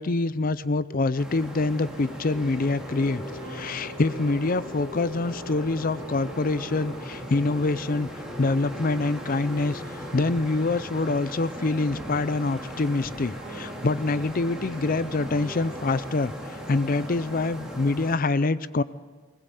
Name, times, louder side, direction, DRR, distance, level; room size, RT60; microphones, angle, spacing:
voice 1, 0.0-3.2 3.5-9.8 10.1-16.3 16.7-18.8, left 3 dB, 45° left, 16 dB, 0.6 m, -25 dB
sound 1, 1.2-18.1, equal, 5° right, 3.3 m, -39 dB
sound 2, 1.8-15.9, equal, 20° right, 7.2 m, -44 dB
20.5 x 19.5 x 8.2 m, 1.5 s
head